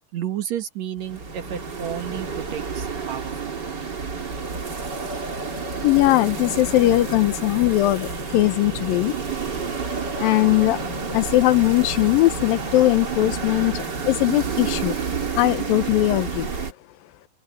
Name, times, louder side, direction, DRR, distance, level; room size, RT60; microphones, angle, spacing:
voice 1, 0.1-3.3, right 10 dB, 60° right, 2.3 m, -31 dB
sound 1, 1.0-16.7, right 4 dB, 30° right, 3.1 m, -30 dB
voice 2, 5.8-9.1 10.2-10.8 11.1-15.0 15.4-16.5, left 16 dB, 80° left, 2.6 m, -20 dB
open air
omnidirectional pair, 4.0 m